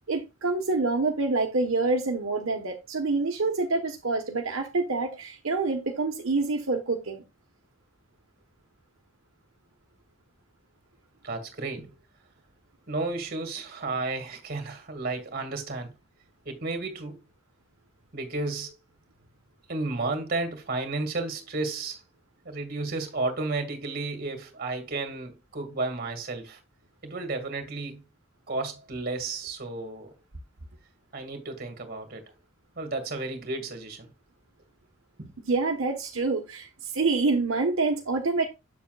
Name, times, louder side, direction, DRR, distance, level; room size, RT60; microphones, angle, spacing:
voice 1, 0.1-7.2 35.5-36.7 36.9-38.4, right 3 dB, 75° right, 1.1 m, -26 dB
voice 2, 11.2-11.9 12.9-15.9 16.5-17.2 18.1-18.8 19.7-22.0 22.5-26.6 27.0-28.0 28.5-30.2 31.1-32.3 32.8-34.1 35.2-35.3, right 3 dB, 45° right, 1.9 m, -32 dB
8.5 x 7.2 x 2.3 m
head